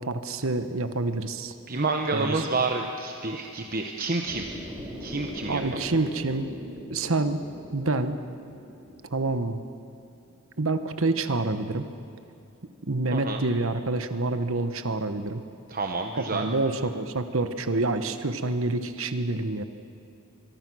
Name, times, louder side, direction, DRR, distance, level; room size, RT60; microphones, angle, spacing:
voice 1, 0.0-1.5 2.1-2.4 5.5-6.5 6.9-7.4 7.7-8.2 9.1-9.6 10.6-11.9 12.9-15.4 16.2-19.6, right 2 dB, 65° right, 9 dB, 1.1 m, -27 dB
voice 2, 1.7-4.5 5.0-5.8 13.1-13.4 15.7-16.5, right 3 dB, 40° right, 3 dB, 1.1 m, -29 dB
sound 1, 4.2-10.4, equal, 5° right, 4.6 m, -41 dB
24.0 x 24.0 x 6.3 m, 2.7 s
head